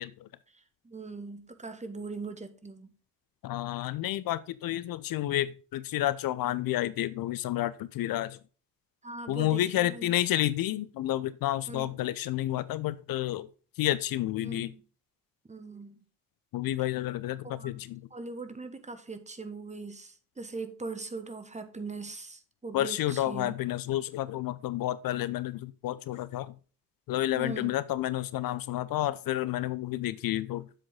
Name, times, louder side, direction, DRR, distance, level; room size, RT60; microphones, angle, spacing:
voice 1, 0.5-2.9 9.0-10.1 11.7-12.0 14.4-14.8 15.5-16.0 17.4-17.8 18.1-23.5 27.3-27.8, right 3 dB, 15° right, 1.3 m, -41 dB
voice 2, 3.4-8.4 9.3-13.5 13.8-14.7 16.5-18.0 22.7-26.5 27.1-30.7, left 14 dB, 50° left, 0.6 m, -30 dB
7.5 x 6.7 x 3.7 m
figure-of-eight pair, 45°, 46 cm